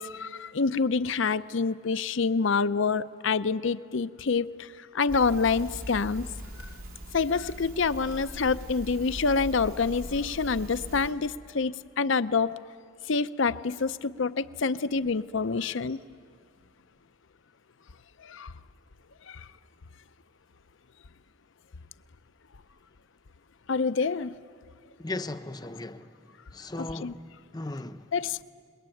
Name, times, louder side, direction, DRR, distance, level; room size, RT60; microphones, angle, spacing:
voice 1, 0.0-6.3 7.1-12.6 13.1-16.0 18.2-18.5 19.3-19.5 23.7-24.3 26.8-27.1 28.1-28.4, left 4 dB, 65° left, 0.6 m, -27 dB
Crackle, 5.1-11.1, equal, 85° right, 5.1 m, -41 dB
voice 2, 25.0-26.1 26.5-28.1, left 2 dB, 20° left, 0.7 m, -37 dB
27.0 x 21.5 x 9.2 m
head